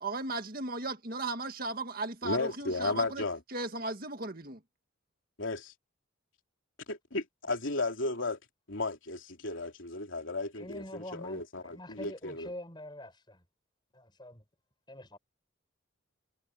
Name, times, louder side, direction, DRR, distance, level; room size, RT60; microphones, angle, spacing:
voice 1, 0.0-3.2 3.5-4.6, right 2 dB, 45° right, 1.9 m, -36 dB
voice 2, 2.2-3.4 5.4-5.7 6.9-8.4 8.7-12.5, left 2 dB, 70° left, 3.2 m, -34 dB
voice 3, 10.6-13.4 13.9-14.4 14.9-15.2, left 1 dB, 20° left, 5.7 m, -45 dB
head